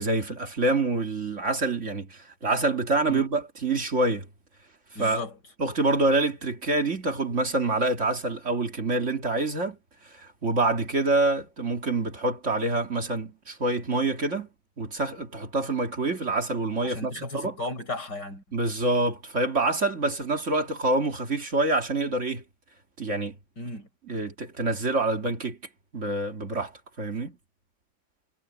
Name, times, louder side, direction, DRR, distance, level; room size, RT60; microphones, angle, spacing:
voice 1, 0.0-4.3 5.0-5.2 5.6-9.8 10.1-14.5 14.8-17.5 18.5-22.4 23.0-23.4 24.1-25.6 25.9-26.7 27.0-27.4, right 2 dB, 45° right, 2.3 m, -26 dB
voice 2, 5.0-5.4 16.8-18.4 23.6-23.9, left 2 dB, 80° left, 6.9 m, -35 dB
omnidirectional pair, 1.8 m